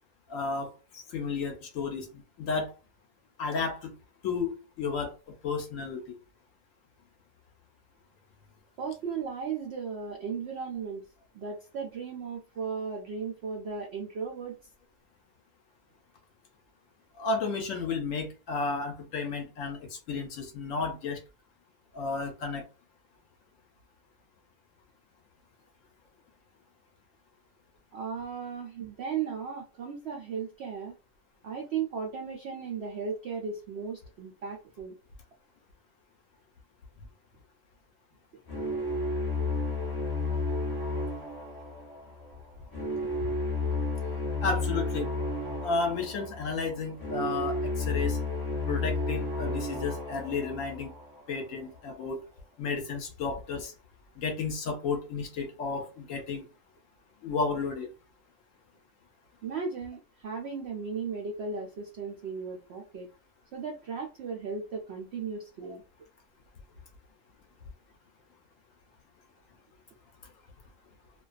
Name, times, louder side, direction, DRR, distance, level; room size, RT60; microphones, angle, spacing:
voice 1, 0.3-2.7 3.4-3.9 4.2-5.1 5.4-6.2 17.2-21.2 21.9-22.6 44.4-45.1 45.6-48.2 48.7-50.9 51.3-52.2 52.6-53.7 54.2-56.4 57.2-57.9, left 4 dB, 70° left, 0.8 m, -32 dB
voice 2, 8.8-11.1 11.3-14.6 27.9-30.9 31.4-35.0 59.4-63.1 63.5-65.8, right 5 dB, 85° right, 0.5 m, -36 dB
sound 1, 38.5-51.6, left 2 dB, 25° left, 0.5 m, -32 dB
2.4 x 2.2 x 2.3 m
omnidirectional pair, 1.6 m